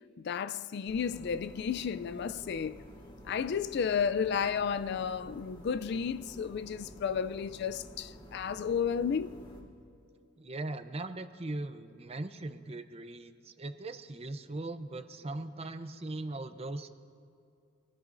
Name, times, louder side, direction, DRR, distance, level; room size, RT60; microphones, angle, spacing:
voice 1, 0.2-2.8 3.2-9.4, left 6 dB, 55° left, 0.3 m, -32 dB
sound 1, 0.8-9.6, equal, 25° left, 3.1 m, -51 dB
voice 2, 10.4-16.9, right 2 dB, 30° right, 0.6 m, -39 dB
25.5 x 16.0 x 2.6 m
head